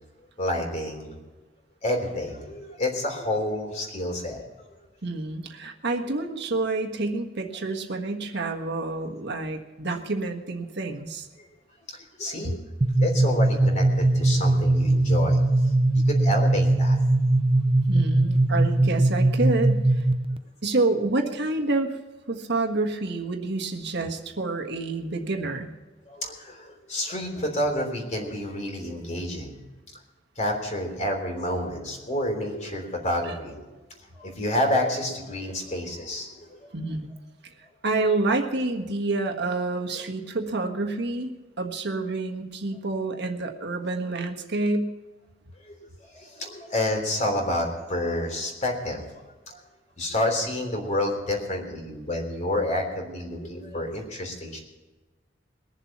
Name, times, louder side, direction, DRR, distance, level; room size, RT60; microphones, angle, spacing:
voice 1, 0.4-1.1 1.8-4.4 11.4-11.5 12.2-12.6 13.0-15.4 16.1-17.0 26.1-29.6 30.4-33.7 34.1-36.7 45.6-45.8 46.1-49.0 49.5-49.6 50.0-54.6, left 1 dB, 40° left, 2 dB, 3.3 m, -29 dB
voice 2, 5.0-11.3 12.4-12.5 17.9-20.1 20.6-22.0 22.3-25.7 33.2-33.4 36.7-37.1 37.8-41.3 41.6-44.9, right 2 dB, 60° right, 4 dB, 1.5 m, -28 dB
sound 1, 12.8-20.4, right 2 dB, 30° right, 0.6 m, -21 dB
22.0 x 7.3 x 5.9 m, 1.2 s
head